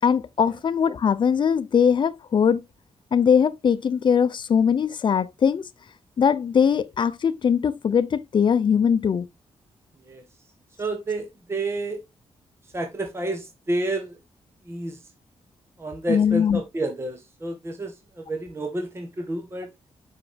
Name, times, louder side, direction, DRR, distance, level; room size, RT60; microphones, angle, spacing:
voice 1, 0.0-2.6 3.1-5.6 6.2-9.3 16.1-16.6, left 7 dB, 50° left, 0.6 m, -21 dB
voice 2, 10.8-12.0 12.7-14.2 14.7-15.0 15.8-19.7, right 2 dB, 25° right, 1.4 m, -30 dB
7.5 x 5.9 x 3.3 m
wide cardioid pair, 125°, 11 cm